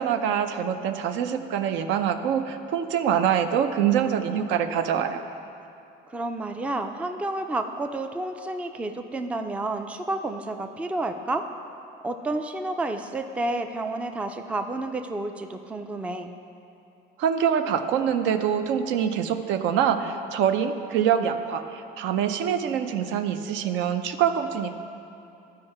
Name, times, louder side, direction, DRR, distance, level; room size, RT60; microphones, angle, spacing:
voice 1, 0.0-5.2 17.2-24.7, right 8 dB, 75° right, 8 dB, 0.6 m, -25 dB
voice 2, 6.1-11.5 12.0-16.3, right 2 dB, 5° right, 6 dB, 0.3 m, -30 dB
13.0 x 4.8 x 4.3 m, 2.7 s
cardioid pair, 130°, 20 cm